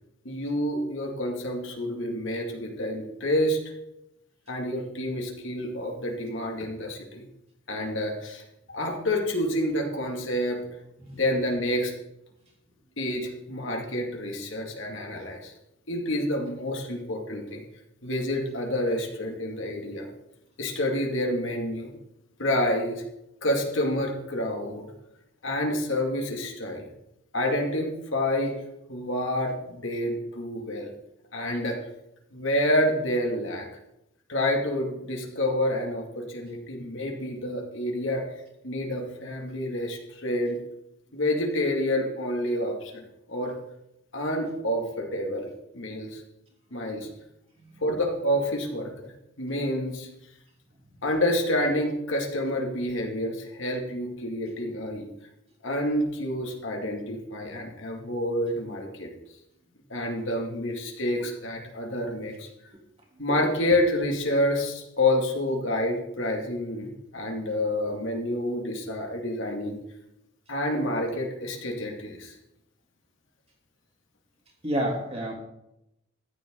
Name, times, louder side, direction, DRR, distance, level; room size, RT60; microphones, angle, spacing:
voice 1, 0.2-3.6 4.5-7.3 7.7-8.4 8.7-10.6 11.1-11.9 13.0-15.5 15.9-17.6 18.0-20.1 20.6-21.9 22.4-23.0 23.4-24.9 25.4-26.9 27.3-28.5 28.9-30.9 31.3-31.8 32.3-33.7 34.3-38.3 38.6-40.6 41.1-43.5 44.1-45.5 45.7-46.2 46.7-47.1 47.8-49.1 49.4-50.1 51.0-55.1 55.6-59.1 59.9-62.5 63.2-69.8 70.5-72.3, left 1 dB, 70° left, 1 dB, 2.4 m, -28 dB
voice 2, 74.6-75.3, right 1 dB, 30° right, -1 dB, 3.0 m, -29 dB
14.0 x 10.5 x 3.8 m, 0.85 s
head